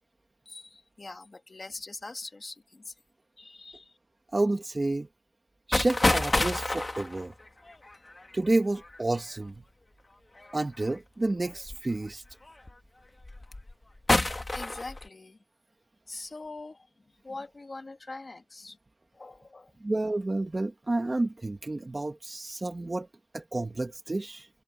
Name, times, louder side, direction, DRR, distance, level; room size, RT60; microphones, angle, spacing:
voice 1, 0.5-2.9 3.4-3.9 14.5-15.4 16.1-16.9 17.2-18.8 19.1-19.7, left 3 dB, 75° left, 2.0 m, -43 dB
voice 2, 4.3-5.1 5.7-7.3 8.3-9.6 10.5-12.2 19.8-23.1 23.3-24.5, right 2 dB, 55° right, 1.9 m, -30 dB
sound 1, 5.7-9.2 10.4-10.8 11.7-11.8 12.3-12.7 13.2-13.7 14.1-15.1, left 2 dB, 50° left, 1.5 m, -28 dB
wide cardioid pair, 60°, 0 cm